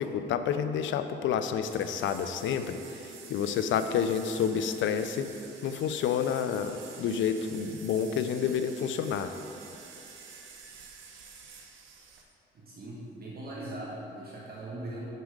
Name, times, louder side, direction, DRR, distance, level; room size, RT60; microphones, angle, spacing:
voice 1, 0.0-5.3 5.6-9.3, left 7 dB, 75° left, 9 dB, 0.5 m, -29 dB
sound 1, 1.7-12.2, right 5 dB, 80° right, 0.9 m, -49 dB
voice 2, 12.5-15.0, right 1 dB, 50° right, -5 dB, 1.3 m, -40 dB
6.7 x 6.5 x 4.9 m, 2.8 s
cardioid pair, 90°, 20 cm